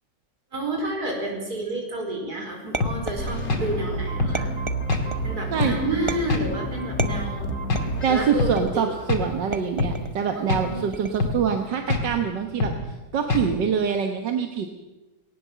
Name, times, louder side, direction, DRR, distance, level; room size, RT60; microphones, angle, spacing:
voice 1, 0.5-4.5 5.2-7.5 8.1-8.9 10.3-10.8, right 2 dB, 60° right, 2 dB, 5.1 m, -30 dB
sound 1, 2.7-3.7 4.3-5.3 6.1-6.5 7.0-8.0 8.6-9.0 9.5-10.2 10.9-11.4, right 2 dB, 20° right, 1.0 m, -32 dB
sound 2, 2.8-3.0 3.5-3.7 4.2-4.4 4.9-5.1 5.6-5.8 6.3-6.5 7.0-7.2 7.7-7.9 8.4-8.6 9.1-9.3 9.8-10.0 10.5-10.7 11.2-11.4 11.9-12.1 12.6-12.8 13.3-13.5, left 3 dB, 90° left, 3.2 m, -24 dB
sound 3, 3.2-9.3, right 1 dB, 45° left, 3.3 m, -31 dB
voice 2, 8.0-14.7, right 7 dB, 85° right, 5 dB, 2.0 m, -25 dB
19.5 x 18.5 x 7.5 m, 1.1 s
omnidirectional pair, 1.9 m